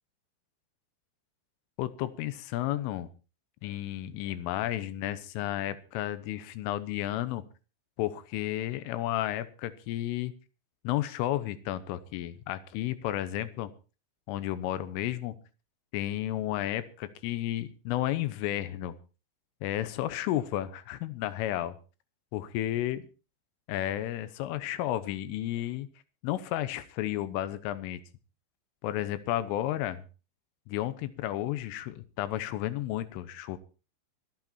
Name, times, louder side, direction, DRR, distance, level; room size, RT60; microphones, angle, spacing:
voice 1, 1.8-3.1 3.6-7.4 8.0-10.3 10.9-13.7 14.3-15.4 15.9-19.0 19.6-21.8 22.3-23.0 23.7-25.9 26.2-28.0 28.8-30.0 30.7-33.6, left 13 dB, 85° left, 14 dB, 3.6 m, -32 dB
25.0 x 8.9 x 4.3 m, 0.34 s
omnidirectional pair, 5.6 m